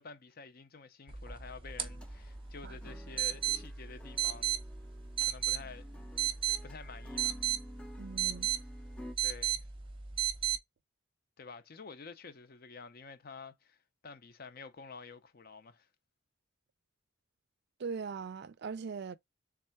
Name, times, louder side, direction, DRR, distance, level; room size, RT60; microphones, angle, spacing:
voice 1, 0.0-4.6 5.2-5.8 6.1-6.3 6.6-7.5 9.2-9.7 11.4-15.9, left 4 dB, 50° left, 0.6 m, -50 dB
sound 1, 1.1-10.6, right 11 dB, 25° right, 0.7 m, -35 dB
sound 2, 1.8-9.1, left 1 dB, 5° left, 0.5 m, -52 dB
voice 2, 8.0-8.5 17.8-19.2, right 5 dB, 60° right, 0.4 m, -40 dB
3.6 x 3.2 x 4.5 m
head